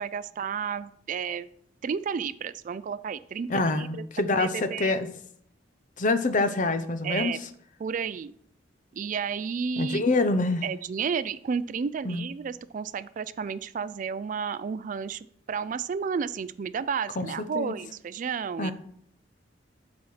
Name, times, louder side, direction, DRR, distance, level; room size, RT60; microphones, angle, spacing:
voice 1, 0.0-1.5 1.8-4.0 4.3-5.0 7.0-7.4 7.8-8.3 8.9-10.0 10.6-18.7, right 6 dB, 45° right, 15 dB, 0.3 m, -32 dB
voice 2, 3.5-5.1 6.0-7.4 9.8-10.6 12.0-12.2 17.2-17.3 17.5-17.7 18.6-18.7, left 2 dB, 45° left, 10 dB, 0.7 m, -26 dB
12.5 x 4.2 x 4.8 m, 0.68 s
head